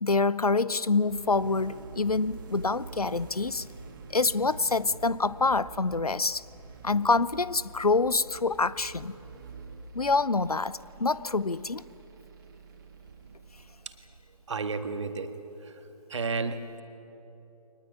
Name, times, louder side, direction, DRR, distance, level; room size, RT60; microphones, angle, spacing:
voice 1, 0.0-3.7 4.1-6.4 6.8-9.2 9.9-11.8, left 3 dB, 90° left, 19 dB, 0.7 m, -26 dB
sound 1, 0.9-14.8, right 4 dB, 35° right, 2.3 m, -47 dB
voice 2, 14.5-15.3 16.1-16.8, right 4 dB, 55° right, 9 dB, 1.7 m, -31 dB
23.5 x 19.5 x 9.7 m, 3.0 s
figure-of-eight pair, 145°, 19 cm